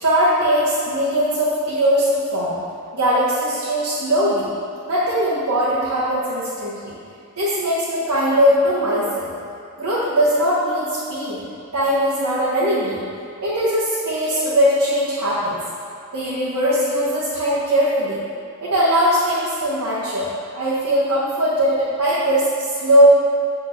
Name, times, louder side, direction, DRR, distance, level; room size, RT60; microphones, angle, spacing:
voice 1, 0.0-2.6 2.9-4.5 4.9-7.0 7.4-9.3 9.8-11.4 11.7-13.0 13.4-15.6 16.1-18.2 18.6-23.1, equal, 90° right, -10 dB, 1.5 m, -20 dB
8.8 x 3.8 x 6.5 m, 2.4 s
head